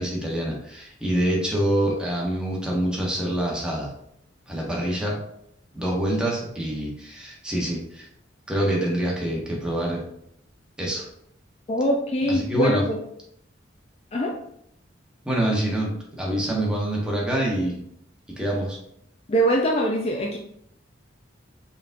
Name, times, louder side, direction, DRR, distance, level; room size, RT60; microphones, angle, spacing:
voice 1, 0.0-3.9 4.5-5.2 5.7-8.1 8.5-10.0 10.8-11.1 12.3-12.8 15.2-17.8 18.4-18.8, right 1 dB, 5° right, -3 dB, 1.0 m, -25 dB
voice 2, 11.7-13.0 14.1-14.4 19.3-20.4, equal, 35° left, 0 dB, 0.4 m, -23 dB
4.6 x 3.7 x 2.6 m, 0.73 s
head